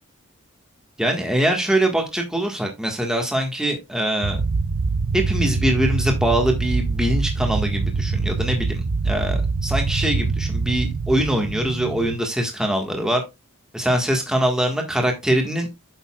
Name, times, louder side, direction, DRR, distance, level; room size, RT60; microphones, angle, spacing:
voice 1, 1.0-4.4 5.1-13.2 13.7-15.7, right 1 dB, 5° right, 1.6 m, -23 dB
sound 1, 4.2-12.2, right 4 dB, 55° right, 0.6 m, -24 dB
8.9 x 6.9 x 2.4 m
head